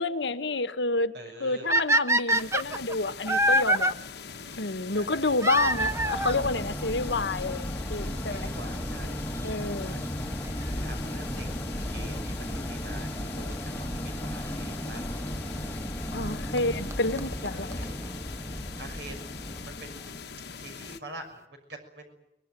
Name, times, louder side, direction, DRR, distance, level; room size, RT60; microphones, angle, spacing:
voice 1, 0.0-1.1 1.4-4.0 4.6-8.5 9.4-10.0 16.1-17.8, left 2 dB, 85° left, 1.5 m, -29 dB
voice 2, 1.1-1.7 4.9-5.3 5.7-5.8 8.0-10.0 10.7-11.5 11.9-13.1 13.4-15.2 16.4-16.8 17.5-18.0 18.8-19.4 19.6-20.2 20.6-22.2, right 1 dB, 70° right, 6.2 m, -45 dB
sound 1, 1.7-3.9 5.4-6.4 7.4-7.5 8.2-8.3 8.5-8.6 10.4-10.7 13.5-13.6 14.7-14.8 16.2-16.3 16.6-16.7 16.9-17.0 17.2-17.3 17.5-17.6 17.7-17.8 18.0-18.1, right 1 dB, 15° right, 1.0 m, -24 dB
sound 2, 2.3-21.0, left 6 dB, 65° left, 1.2 m, -43 dB
sound 3, 5.5-20.5, equal, 10° left, 1.3 m, -35 dB
23.5 x 21.0 x 9.2 m
head